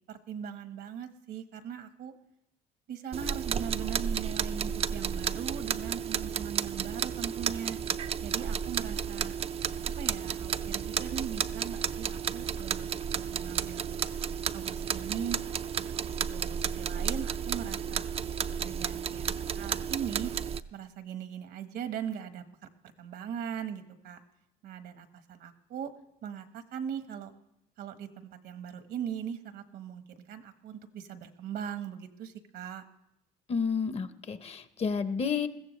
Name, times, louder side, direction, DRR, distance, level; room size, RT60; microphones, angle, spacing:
voice 1, 0.1-2.1 2.9-7.8 8.2-9.3 10.0-14.0 14.5-15.4 16.0-18.0 18.6-20.3 20.7-22.4 23.0-24.2 24.6-25.9 26.2-27.3 27.8-32.8, right 8 dB, 75° right, 9 dB, 1.3 m, -39 dB
sound 1, 3.1-20.6, right 7 dB, 35° right, 0.4 m, -32 dB
voice 2, 33.5-35.5, left 6 dB, 35° left, 12 dB, 0.8 m, -30 dB
21.0 x 15.0 x 3.2 m, 0.82 s
cardioid pair, 110°, 17 cm